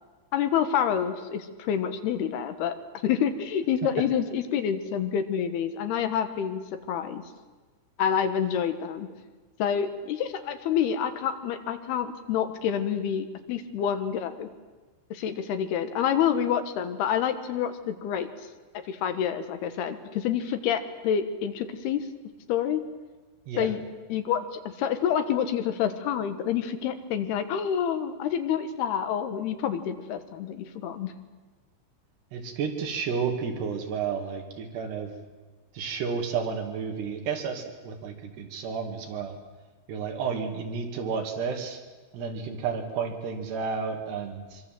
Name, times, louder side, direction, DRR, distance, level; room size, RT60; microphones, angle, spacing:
voice 1, 0.3-2.8 3.0-6.6 6.9-7.2 8.0-9.1 9.6-14.5 15.1-18.3 18.9-22.0 22.5-22.8 23.6-23.8 24.1-31.1, left 8 dB, 75° left, 9 dB, 3.4 m, -28 dB
voice 2, 32.3-35.1 35.7-39.4 39.9-41.8 42.1-44.6, right 6 dB, 80° right, 3 dB, 4.6 m, -31 dB
25.5 x 24.0 x 7.8 m, 1.3 s
omnidirectional pair, 4.7 m